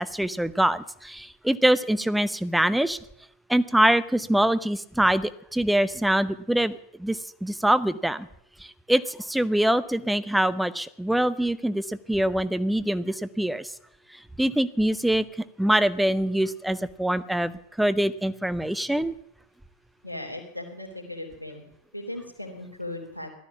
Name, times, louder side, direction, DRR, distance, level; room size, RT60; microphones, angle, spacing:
voice 1, 0.0-3.0 3.5-8.3 8.6-13.7 14.1-15.3 15.6-19.1, right 1 dB, 5° right, 15 dB, 0.7 m, -24 dB
voice 2, 20.0-21.6 21.9-23.3, left 1 dB, 90° left, 2 dB, 2.9 m, -37 dB
15.5 x 12.5 x 7.1 m, 0.73 s
figure-of-eight pair, 90°, 0 cm